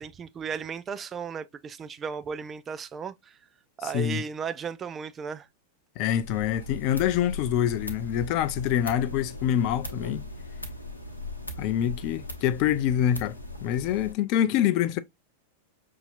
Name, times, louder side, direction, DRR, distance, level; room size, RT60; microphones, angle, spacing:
voice 1, 0.0-3.4 3.8-5.5, right 6 dB, 25° right, 0.4 m, -35 dB
voice 2, 6.0-10.3 11.6-15.0, left 10 dB, 45° left, 0.4 m, -26 dB
sound 1, 6.2-14.1, left 2 dB, 80° left, 0.8 m, -39 dB
5.6 x 2.8 x 2.5 m
figure-of-eight pair, 90°, 0 cm